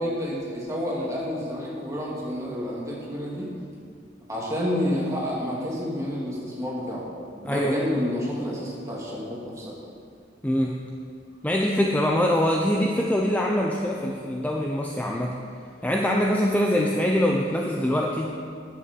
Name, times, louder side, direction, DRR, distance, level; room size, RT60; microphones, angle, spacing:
voice 1, 0.0-3.5 4.3-7.0 7.3-9.8, equal, 15° right, -5 dB, 2.4 m, -29 dB
voice 2, 10.4-10.8 11.4-15.4 15.8-18.3, equal, 10° left, -1 dB, 0.6 m, -24 dB
11.0 x 6.9 x 6.9 m, 2.3 s
head